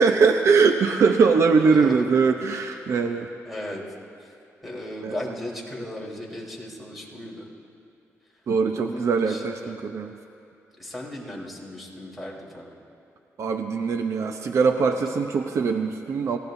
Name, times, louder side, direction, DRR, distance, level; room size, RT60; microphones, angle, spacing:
voice 1, 0.0-3.3 5.0-5.2 8.5-10.2 13.4-16.4, right 5 dB, 60° right, 5 dB, 0.8 m, -21 dB
voice 2, 1.7-2.2 3.4-3.8 4.2-4.3 4.6-7.5 8.7-9.8 10.8-12.8, left 1 dB, ahead, -4 dB, 3.8 m, -36 dB
29.5 x 17.5 x 2.7 m, 2.6 s
cardioid pair, 105°, 5 cm